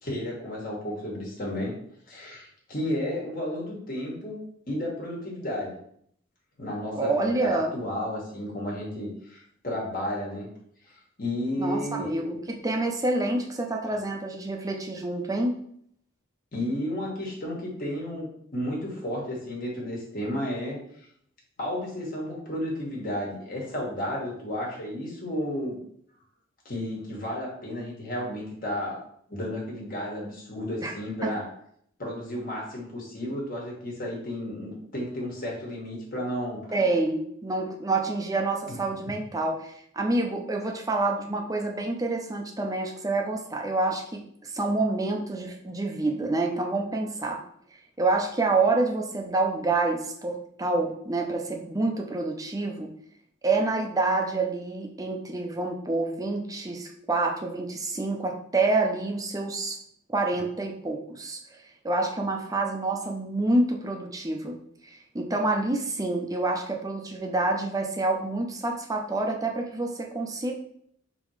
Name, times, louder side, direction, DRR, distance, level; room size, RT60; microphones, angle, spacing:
voice 1, 0.0-1.7 2.1-4.4 4.7-5.8 6.6-10.5 11.2-12.2 16.5-20.8 21.6-25.8 26.6-29.0 29.3-31.4 32.0-36.7 38.7-39.2, left 1 dB, 45° left, -3 dB, 1.5 m, -32 dB
voice 2, 6.9-7.8 11.6-15.6 30.8-30.9 31.2-31.3 36.7-47.4 48.0-52.9 53.4-59.8 60.1-61.4 61.8-64.6 64.9-70.5, right 2 dB, 20° right, 1 dB, 0.6 m, -27 dB
3.7 x 3.0 x 4.8 m, 0.67 s
head